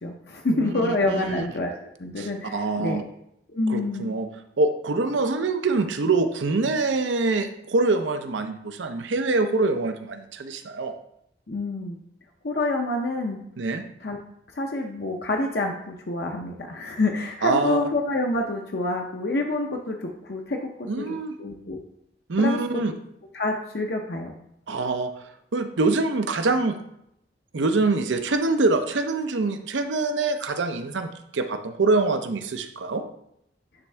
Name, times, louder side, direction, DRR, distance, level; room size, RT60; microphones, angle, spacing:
voice 1, 0.0-1.7 2.0-3.0 3.5-4.1 11.5-12.0 12.4-13.4 14.0-14.2 14.5-21.8 22.4-22.6 23.3-24.3, left 2 dB, 60° left, 1 dB, 0.6 m, -27 dB
voice 2, 0.5-1.5 2.2-3.0 3.7-4.3 4.6-10.9 13.6-13.8 17.4-17.8 20.9-21.4 22.3-22.9 24.7-25.1 25.5-26.8 27.5-33.0, right 3 dB, 90° right, 7 dB, 0.6 m, -25 dB
9.6 x 3.5 x 3.3 m, 0.77 s
head